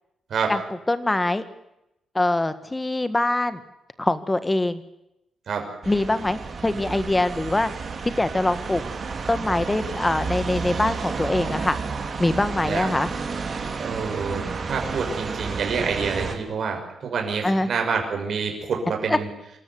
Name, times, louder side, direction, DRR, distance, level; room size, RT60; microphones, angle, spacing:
voice 1, 0.9-1.4 2.1-3.6 4.0-4.8 5.8-7.7 8.0-8.8 9.3-11.8 12.2-13.1 17.4-17.7 19.1-19.2, left 2 dB, 10° left, 12 dB, 1.6 m, -23 dB
sound 1, 5.8-16.3, right 4 dB, 35° right, 3.3 m, -31 dB
voice 2, 13.8-19.3, right 5 dB, 50° right, 2 dB, 6.1 m, -27 dB
26.5 x 13.5 x 9.7 m, 0.85 s
cardioid pair, 140°, 0 cm